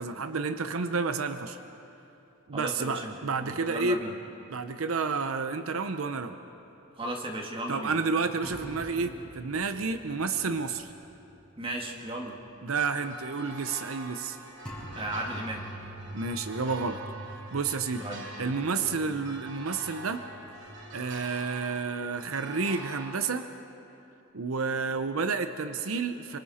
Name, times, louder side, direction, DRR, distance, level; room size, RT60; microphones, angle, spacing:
voice 1, 0.0-1.6 2.5-4.0 4.5-6.4 7.7-10.9 12.6-14.4 16.1-17.0 17.5-18.0 18.4-20.2 20.9-23.5 24.3-26.4, right 4 dB, 90° right, 9 dB, 0.8 m, -30 dB
voice 2, 2.5-4.1 7.0-8.0 11.6-12.4 14.9-15.6 18.0-18.2 18.8-19.0, right 1 dB, 25° right, 1 dB, 2.0 m, -36 dB
sound 1, 8.4-11.6 11.9-12.0 14.7-20.7, right 1 dB, 5° left, 5.2 m, -45 dB
sound 2, 12.8-23.1, right 2 dB, 60° right, 2.7 m, -45 dB
28.5 x 25.5 x 4.3 m, 2.9 s
head